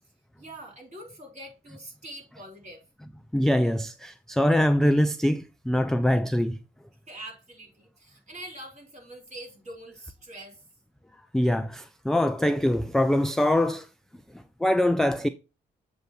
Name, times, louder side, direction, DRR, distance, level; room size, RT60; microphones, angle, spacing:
voice 1, 0.4-2.8 7.1-10.6, right 1 dB, 35° right, 3.9 m, -44 dB
voice 2, 3.3-6.6 11.3-13.9 14.6-15.3, left 1 dB, ahead, 0.3 m, -23 dB
7.7 x 2.7 x 5.9 m
cardioid pair, 95°, 21 cm